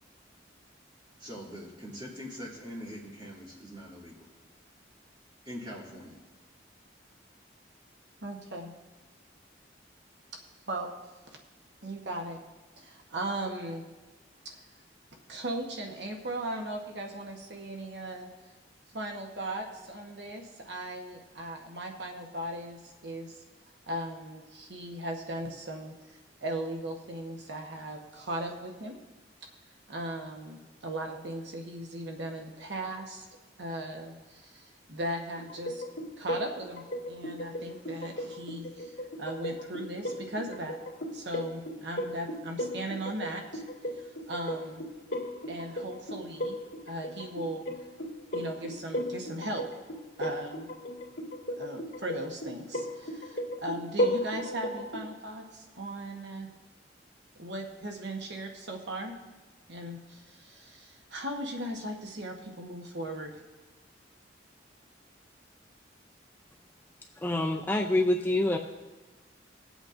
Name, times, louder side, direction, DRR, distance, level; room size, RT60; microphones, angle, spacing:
voice 1, 1.2-4.3 5.5-6.2, equal, 25° right, -5 dB, 2.5 m, -43 dB
voice 2, 8.2-8.7 10.7-10.9 11.3-11.4 11.8-12.4 12.8-13.8 14.4-14.6 15.3-18.3 18.9-23.4 23.9-29.0 29.9-33.3 33.6-35.8 36.2-40.8 41.1-43.6 43.9-44.8 45.5-46.6 46.9-47.7 48.3-49.6 50.2-50.7 51.5-56.5 57.4-59.1 59.7-63.3, right 1 dB, 65° right, 2 dB, 1.0 m, -38 dB
sound 1, 35.4-55.1, equal, 60° left, 1.8 m, -36 dB
voice 3, 67.2-68.6, left 1 dB, 10° left, 3 dB, 0.4 m, -26 dB
20.5 x 8.2 x 2.5 m, 1.2 s
head